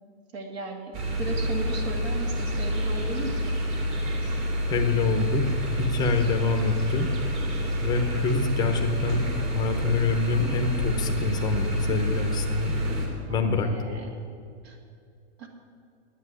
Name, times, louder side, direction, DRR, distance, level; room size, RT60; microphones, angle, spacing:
voice 1, 0.3-3.6 13.3-14.2 14.6-14.8 15.4-15.5, right 3 dB, 60° right, 4 dB, 2.2 m, -36 dB
sound 1, 0.9-13.1, equal, 35° right, 2.6 m, -28 dB
voice 2, 4.7-7.1 7.8-12.8 13.3-13.9, left 4 dB, 10° left, 5 dB, 0.8 m, -26 dB
10.0 x 8.9 x 9.8 m, 2.4 s
supercardioid pair, 160°, 35 cm